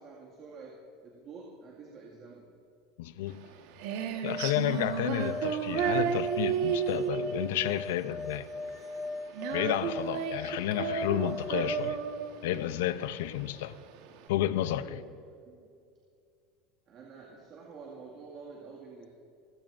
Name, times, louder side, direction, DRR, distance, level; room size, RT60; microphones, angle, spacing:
voice 1, 0.0-2.6 14.5-15.7 16.9-19.1, right 4 dB, 35° right, 2.0 m, -49 dB
voice 2, 3.0-3.5 4.2-8.5 9.5-12.0 12.4-13.8 14.3-15.0, left 12 dB, 85° left, 0.6 m, -31 dB
Female singing, 3.3-14.3, right 8 dB, 65° right, 1.4 m, -33 dB
sound 1, 4.2-11.9, left 2 dB, 15° left, 0.7 m, -40 dB
29.5 x 16.0 x 2.6 m
supercardioid pair, 155°, 0 cm